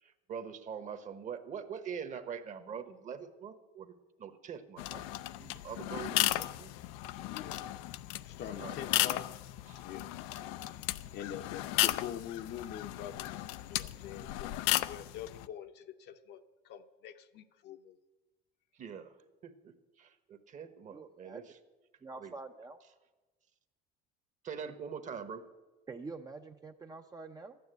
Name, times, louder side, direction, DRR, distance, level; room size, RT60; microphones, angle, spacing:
voice 1, 0.0-3.9 4.2-5.1 5.4-6.7 8.5-9.0 9.7-9.8 18.8-19.1 19.4-21.6 22.1-22.3 24.4-25.4, right 7 dB, 35° right, 10 dB, 1.1 m, -44 dB
sound 1, 4.8-15.5, left 16 dB, 80° left, 0.5 m, -35 dB
voice 2, 7.2-7.6 8.2-9.3 9.8-10.2 10.6-10.8 11.1-13.4 13.7-18.0, left 9 dB, 55° left, 8 dB, 0.8 m, -45 dB
voice 3, 20.9-21.4 22.0-22.8 25.9-27.6, right 3 dB, 15° right, 5 dB, 0.6 m, -46 dB
12.0 x 9.5 x 8.0 m, 1.2 s
cardioid pair, 120°, 21 cm